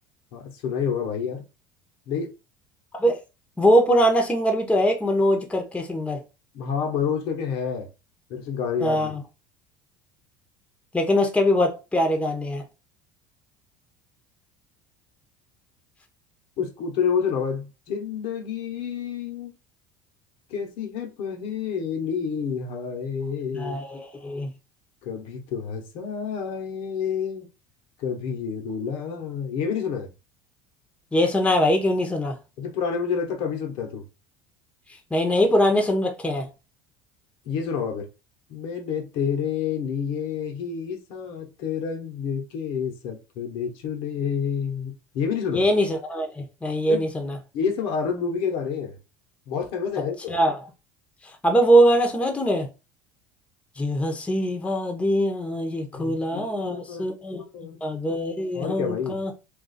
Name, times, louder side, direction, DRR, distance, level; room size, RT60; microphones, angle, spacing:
voice 1, 0.3-1.4 2.1-2.3 6.5-7.9 8.3-9.1 16.6-19.5 20.5-23.7 25.0-27.5 28.0-30.1 32.6-34.0 37.4-38.1 38.5-45.7 46.9-47.1 47.5-49.0 49.5-50.3 55.9-57.8 58.5-59.2, left 7 dB, 65° left, 1.0 m, -29 dB
voice 2, 3.6-6.2 8.8-9.2 10.9-12.6 23.5-24.5 31.1-32.4 35.1-36.5 45.5-47.4 50.3-50.6 51.4-52.7 53.8-57.4 57.8-59.3, equal, 10° left, 0.8 m, -22 dB
2.5 x 2.3 x 4.1 m
hypercardioid pair, 85°, 10 cm